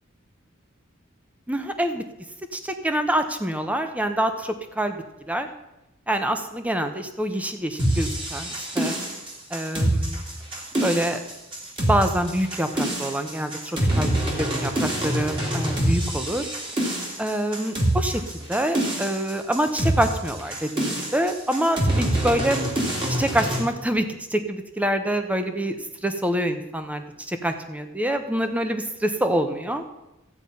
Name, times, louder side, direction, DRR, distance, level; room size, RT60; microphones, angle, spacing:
voice 1, 1.5-2.0 2.5-5.5 6.1-9.0 9.5-10.2 10.8-11.2 11.9-16.5 17.2-22.7 23.1-25.8 26.0-29.8, right 1 dB, 5° right, 7 dB, 1.0 m, -26 dB
sound 1, 7.8-23.6, right 1 dB, 25° right, 2.6 m, -26 dB
14.0 x 9.1 x 5.5 m, 0.97 s
head